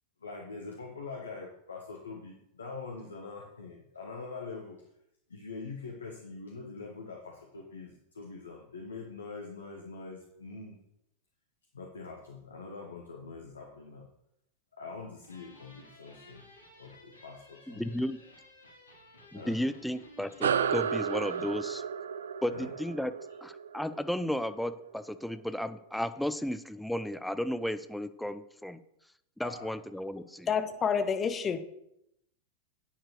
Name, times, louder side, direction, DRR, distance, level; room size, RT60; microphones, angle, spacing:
voice 1, 0.2-4.8 5.3-10.8 11.7-14.1 14.8-16.4 16.8-18.1 19.3-19.8 22.5-22.7 29.4-29.7, left 4 dB, 70° left, 1.3 m, -44 dB
sound 1, 15.2-21.6, left 1 dB, 90° right, 3.5 m, -54 dB
voice 2, 17.7-18.2 19.3-21.8 22.4-23.1 23.4-28.8 29.4-30.5, equal, ahead, 0.6 m, -34 dB
sound 2, 20.4-25.2, right 7 dB, 65° right, 0.4 m, -33 dB
voice 3, 30.5-31.6, left 6 dB, 25° left, 1.0 m, -28 dB
11.5 x 9.0 x 3.3 m
figure-of-eight pair, 90°, 0 cm